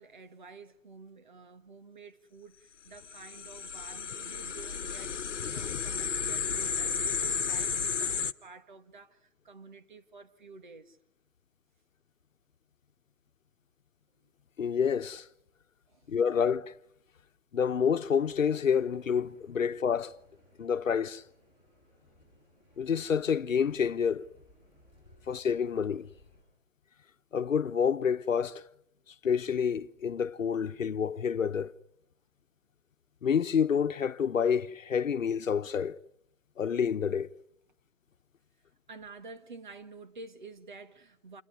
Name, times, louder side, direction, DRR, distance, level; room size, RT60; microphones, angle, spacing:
voice 1, 0.0-11.0 15.9-16.1 38.9-41.4, right 4 dB, 40° right, 1.8 m, -50 dB
sound 1, 3.0-8.3, left 6 dB, 70° left, 1.3 m, -33 dB
voice 2, 5.4-5.8 14.6-15.2 16.1-16.7 17.5-20.1 20.6-21.2 22.8-24.3 25.3-26.1 27.3-28.6 29.2-31.7 33.2-36.0 36.6-37.3, left 7 dB, 90° left, 1.2 m, -28 dB
sound 2, 18.0-26.4, left 1 dB, 10° right, 7.5 m, -62 dB
28.0 x 21.0 x 9.9 m
hypercardioid pair, 175°, 38 cm